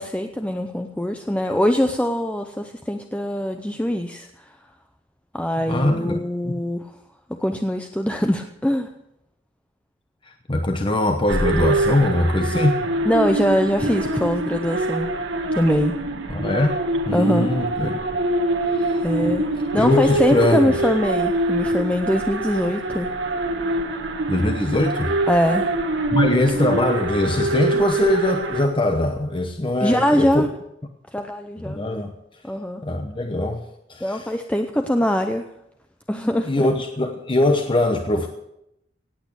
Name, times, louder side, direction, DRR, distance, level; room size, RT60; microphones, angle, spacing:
voice 1, 0.0-4.3 5.3-6.9 7.3-8.9 13.1-15.1 15.5-15.9 17.1-17.5 19.0-19.5 19.7-23.1 25.3-25.7 29.8-30.5 31.1-31.8 32.4-32.8 34.0-35.5 36.1-36.7, equal, 5° left, 5 dB, 0.7 m, -22 dB
voice 2, 5.7-6.5 10.5-12.8 16.3-16.8 17.1-17.9 18.7-19.4 19.7-20.7 24.3-25.1 26.1-30.5 31.6-32.1 32.8-33.6 33.9-34.3 36.5-38.3, left 1 dB, 25° left, 5 dB, 0.9 m, -22 dB
sound 1, 11.3-28.7, right 2 dB, 70° right, 1.5 m, -24 dB
17.5 x 8.5 x 6.9 m, 0.81 s
head